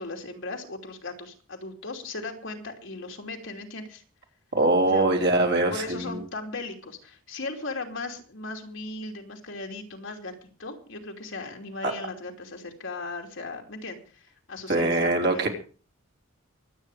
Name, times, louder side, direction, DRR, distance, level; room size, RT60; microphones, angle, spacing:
voice 1, 0.0-4.0 4.8-5.2 5.7-15.5, left 3 dB, 65° left, 3 dB, 2.9 m, -37 dB
voice 2, 4.5-6.2 11.8-11.9 14.7-15.5, right 2 dB, 55° right, 2 dB, 3.5 m, -23 dB
24.0 x 8.9 x 4.9 m, 0.39 s
head